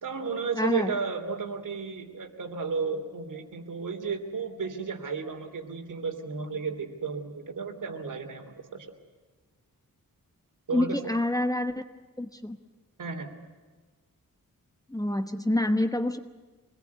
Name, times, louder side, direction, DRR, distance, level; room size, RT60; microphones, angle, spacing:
voice 1, 0.0-8.9 10.7-11.0 13.0-13.3, right 5 dB, 65° right, 5 dB, 3.1 m, -33 dB
voice 2, 0.5-1.0 10.7-11.7 12.2-12.6 14.9-16.2, left 1 dB, 10° left, 8 dB, 1.1 m, -27 dB
26.0 x 20.5 x 9.4 m, 1.3 s
wide cardioid pair, 170°, 34 cm